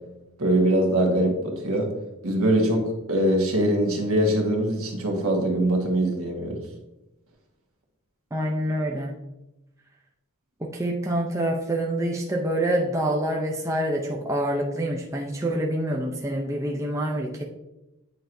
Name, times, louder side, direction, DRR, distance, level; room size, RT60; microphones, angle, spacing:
voice 1, 0.4-1.9 2.2-6.6, right 1 dB, 75° right, 1 dB, 1.4 m, -22 dB
voice 2, 8.3-9.1 10.6-17.4, right 1 dB, 15° right, 0 dB, 0.5 m, -26 dB
8.9 x 4.5 x 2.6 m, 0.95 s
head